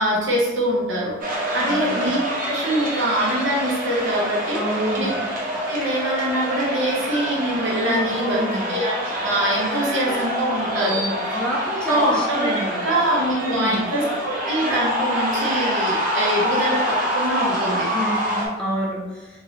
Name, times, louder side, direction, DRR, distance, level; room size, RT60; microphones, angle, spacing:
voice 1, 0.0-5.1 5.7-11.0 11.9-12.5 12.8-17.9, right 1 dB, 65° right, -4 dB, 1.2 m, -24 dB
sound 1, 1.2-18.5, equal, 45° right, 1.0 m, -26 dB
voice 2, 1.6-2.0 4.5-5.1 7.8-8.7 10.8-13.0 13.4-13.8 17.9-19.3, equal, 5° left, -4 dB, 0.6 m, -27 dB
3.8 x 2.6 x 3.2 m, 1.1 s
head